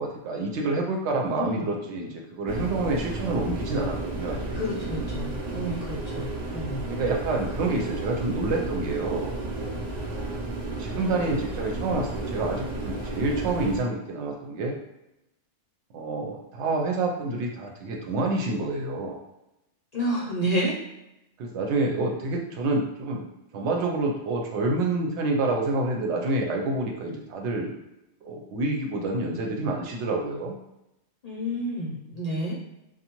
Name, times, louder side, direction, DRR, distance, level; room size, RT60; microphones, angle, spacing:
voice 1, 0.0-4.6 6.1-6.3 6.9-9.3 10.1-10.5 10.8-14.8 15.9-19.2 21.4-23.2 23.5-27.7 28.2-30.6, right 2 dB, 75° right, 1 dB, 0.8 m, -28 dB
voice 2, 1.4-1.7 4.5-6.8 19.9-20.8 31.2-32.6, equal, 45° left, -6 dB, 0.6 m, -30 dB
industrial agitator recording, 2.5-13.8, right 2 dB, 55° right, 0.4 m, -33 dB
2.6 x 2.2 x 2.9 m, 0.90 s
omnidirectional pair, 1.2 m